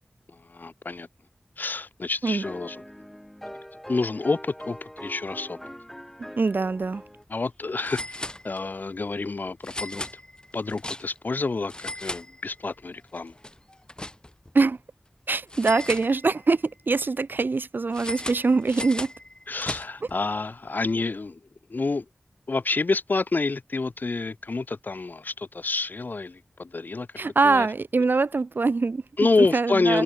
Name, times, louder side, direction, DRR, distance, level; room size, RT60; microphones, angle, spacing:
voice 1, 0.3-1.1 1.6-2.8 3.9-5.6 7.3-10.0 10.5-13.3 19.5-21.4 21.7-22.1 22.5-27.1 27.4-27.7 29.2-30.0, left 3 dB, 60° left, 0.6 m, -28 dB
sound 1, 2.3-7.2, equal, 5° left, 2.6 m, -42 dB
voice 2, 6.2-7.0 14.5-14.8 15.3-19.1 27.2-29.0 29.4-30.0, right 3 dB, 70° right, 0.6 m, -23 dB
sound 2, 6.7-6.8 7.1-7.2 7.8-8.9 9.6-11.3 11.6-12.8 13.1-14.5 15.5-16.6 17.9-20.2, left 1 dB, 25° left, 4.0 m, -37 dB
wide cardioid pair, 70°, 4 cm